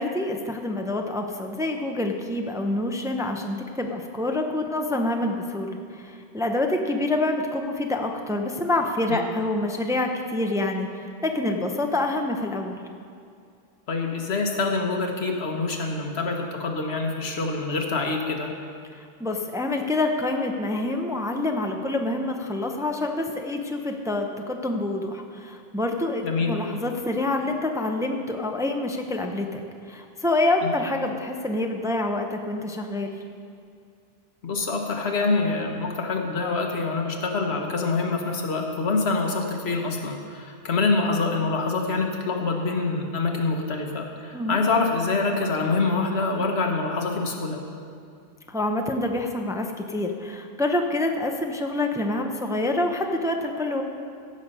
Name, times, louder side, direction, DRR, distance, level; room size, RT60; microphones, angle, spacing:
voice 1, 0.0-12.8 18.9-29.6 29.9-33.2 44.3-44.6 48.5-53.8, left 2 dB, 5° right, 3 dB, 0.6 m, -27 dB
voice 2, 13.9-18.5 26.2-26.5 30.6-30.7 34.4-47.6, left 3 dB, 90° left, 2 dB, 1.5 m, -25 dB
15.5 x 6.5 x 5.4 m, 2.3 s
omnidirectional pair, 1.0 m